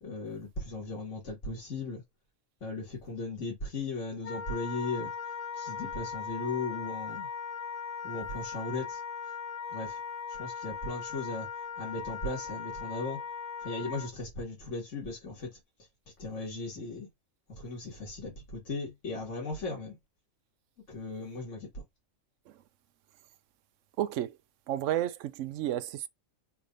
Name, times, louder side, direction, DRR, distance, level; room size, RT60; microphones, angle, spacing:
voice 1, 0.0-2.0 2.6-5.1 5.6-7.3 8.0-9.0 9.7-10.0 10.3-11.5 11.8-13.2 13.6-15.6 16.2-17.1 17.6-20.0 20.9-21.7, left 3 dB, 65° left, 2.2 m, -37 dB
Wind instrument woodwind instrument, 4.2-14.1, left 6 dB, 90° left, 1.2 m, -39 dB
voice 2, 24.0-24.4 24.7-26.1, right 12 dB, 70° right, 0.9 m, -32 dB
4.6 x 3.3 x 2.4 m
omnidirectional pair, 1.4 m